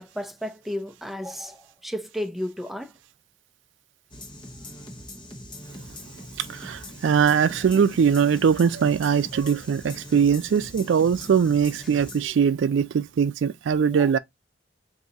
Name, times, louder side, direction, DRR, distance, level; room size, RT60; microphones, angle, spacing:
voice 1, 0.0-3.0 7.5-7.6 13.9-14.2, equal, ahead, 0.4 m, -33 dB
sound 1, 4.1-12.3, left 1 dB, 25° left, 1.0 m, -42 dB
voice 2, 6.5-14.2, right 7 dB, 90° right, 0.4 m, -21 dB
3.8 x 2.6 x 3.9 m
head